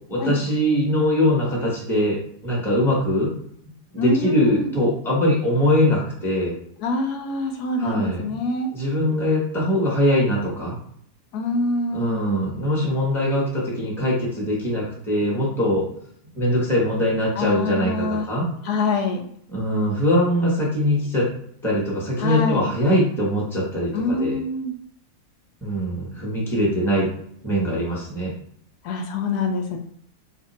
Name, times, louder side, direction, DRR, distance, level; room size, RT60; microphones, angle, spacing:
voice 1, 0.1-2.2 2.4-3.3 3.9-6.5 7.8-8.4 8.7-10.7 11.9-15.9 16.3-18.5 19.5-21.3 21.6-24.4 25.6-27.1 27.4-28.3, left 1 dB, ahead, -4 dB, 0.8 m, -22 dB
voice 2, 4.0-4.7 6.8-8.7 11.3-12.2 17.4-18.3 18.6-19.2 22.2-22.7 23.9-24.7 28.8-29.8, left 2 dB, 80° left, 3 dB, 1.1 m, -25 dB
2.7 x 2.6 x 4.0 m, 0.66 s
omnidirectional pair, 1.7 m